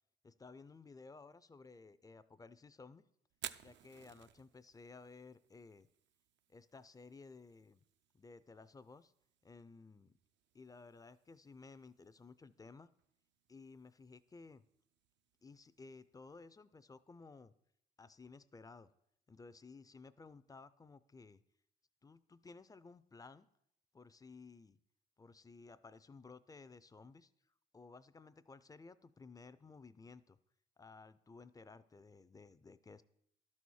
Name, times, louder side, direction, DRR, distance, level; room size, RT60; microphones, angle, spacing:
voice 1, 0.2-3.0 3.6-5.9 6.5-7.8 8.1-9.1 9.4-10.1 10.5-12.9 13.5-14.6 15.4-17.5 18.0-18.9 19.3-21.4 22.0-23.5 23.9-24.8 25.2-27.3 27.7-30.4 30.8-33.0, left 4 dB, 20° left, 15 dB, 0.4 m, -56 dB
Fire, 3.3-17.2, right 10 dB, 65° right, 0.5 m, -58 dB
11.5 x 4.3 x 6.3 m, 0.76 s
cardioid pair, 90°, 20 cm